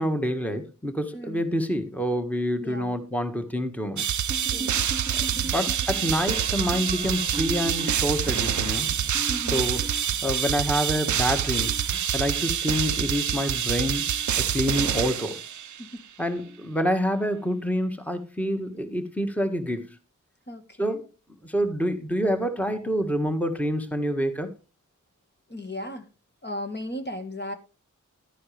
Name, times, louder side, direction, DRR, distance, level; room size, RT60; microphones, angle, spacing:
voice 1, 0.0-4.0 5.1-8.9 9.5-9.9 10.2-11.8 12.1-14.0 14.4-15.4 16.2-20.0 20.8-21.1 21.4-24.5, equal, 5° left, 1.7 m, -27 dB
voice 2, 1.1-1.4 2.6-3.0 4.5-4.9 9.3-9.7 15.8-16.0 20.5-21.0 25.5-26.1 26.4-27.5, left 1 dB, 35° left, 1.7 m, -36 dB
sound 1, 4.0-15.9, right 9 dB, 70° right, 0.5 m, -26 dB
sound 2, 4.3-11.1 11.3-12.9 13.9-14.3 14.5-14.9 16.4-16.7 17.0-17.3 18.8-18.9, right 2 dB, 20° right, 2.0 m, -40 dB
12.0 x 9.6 x 3.4 m
wide cardioid pair, 50°, 31 cm